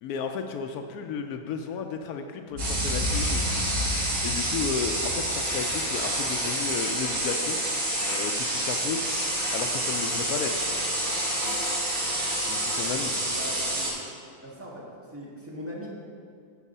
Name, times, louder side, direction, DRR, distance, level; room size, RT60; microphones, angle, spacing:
voice 1, 0.0-3.4 4.2-7.6 8.0-10.7 12.5-13.1, left 6 dB, 80° left, 5 dB, 1.1 m, -33 dB
Boom, 2.5-6.8, left 1 dB, 45° right, 3.2 m, -33 dB
sound 1, 2.6-13.9, right 1 dB, 90° right, 2.8 m, -28 dB
sound 2, 3.1-12.9, left 2 dB, 65° left, 1.4 m, -41 dB
voice 2, 13.2-13.9 14.4-15.9, equal, 10° right, -4 dB, 1.6 m, -40 dB
13.0 x 4.9 x 5.5 m, 2.3 s
omnidirectional pair, 1.6 m